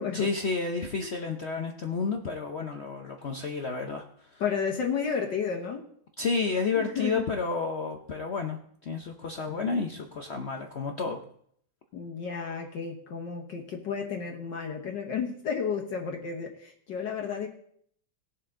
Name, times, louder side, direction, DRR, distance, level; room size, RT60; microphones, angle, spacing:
voice 1, 0.0-4.4 6.2-11.2, left 4 dB, 85° left, 4 dB, 0.5 m, -31 dB
voice 2, 4.4-5.8 6.7-7.3 11.9-17.5, left 6 dB, 60° left, 2 dB, 1.7 m, -32 dB
18.5 x 7.0 x 3.8 m, 0.64 s
omnidirectional pair, 2.3 m